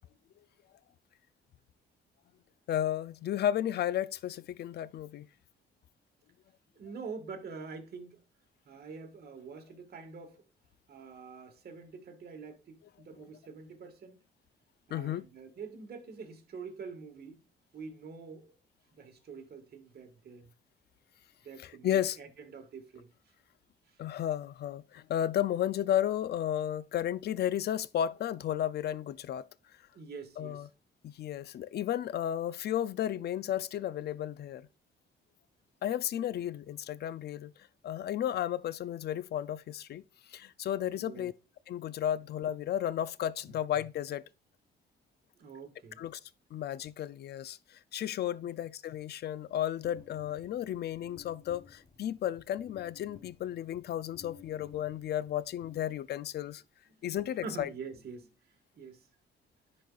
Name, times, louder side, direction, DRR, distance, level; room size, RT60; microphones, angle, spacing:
voice 1, 2.7-5.3 14.9-15.2 21.6-22.2 24.0-29.5 30.4-30.7 31.0-34.7 35.8-37.5 37.8-41.3 41.7-44.2 46.0-46.2 46.5-56.6 57.0-57.7, left 11 dB, 55° left, 0.4 m, -33 dB
voice 2, 6.7-8.2 8.7-10.5 10.9-14.2 14.9-17.4 17.7-18.6 18.9-20.5 21.4-23.1 23.9-24.0 29.9-30.7 40.9-41.3 43.5-43.6 45.4-46.0 48.4-48.6 57.0-57.1 57.4-59.1, right 5 dB, 55° right, 1.6 m, -46 dB
sound 1, 49.8-56.4, left 7 dB, 40° left, 1.0 m, -56 dB
10.0 x 4.2 x 2.4 m
cardioid pair, 90°, 20 cm